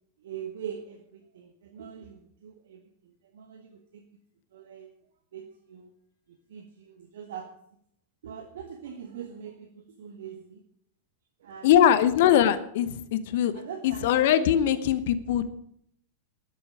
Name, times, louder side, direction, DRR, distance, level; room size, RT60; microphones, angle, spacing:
voice 1, 0.2-4.0 4.5-4.9 5.3-5.9 6.3-7.5 8.2-10.6 11.4-11.7 13.5-14.3 14.7-14.8, right 8 dB, 60° right, 5 dB, 1.2 m, -42 dB
voice 2, 11.6-13.5 13.8-15.5, left 10 dB, 55° left, 13 dB, 1.0 m, -22 dB
13.0 x 12.0 x 4.9 m, 0.70 s
figure-of-eight pair, 90°, 0 cm